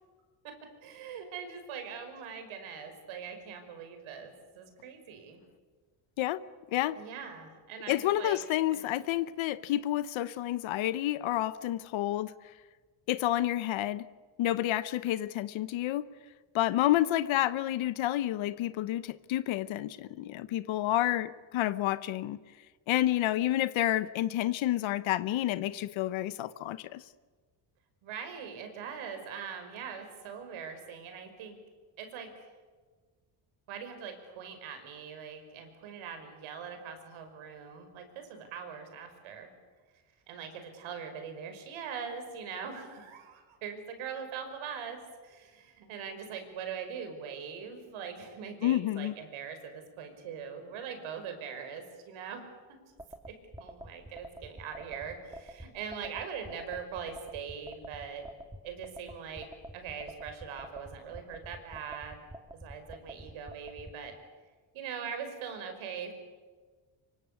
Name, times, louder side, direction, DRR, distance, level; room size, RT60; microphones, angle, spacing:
voice 1, 0.8-5.4 7.0-8.4 8.7-8.9 28.0-31.6 32.0-32.5 33.7-39.5 40.3-52.4 53.3-58.2 58.6-59.5 59.7-62.3 62.5-64.1 64.7-66.1, right 7 dB, 90° right, 5.4 m, -42 dB
voice 2, 7.9-12.3 13.1-14.1 14.4-16.1 16.5-22.4 22.9-27.0 48.6-49.1, left 14 dB, 80° left, 1.0 m, -29 dB
sound 1, 53.0-63.9, right 1 dB, 10° right, 2.4 m, -46 dB
25.5 x 24.5 x 8.3 m
cardioid pair, 115°, 47 cm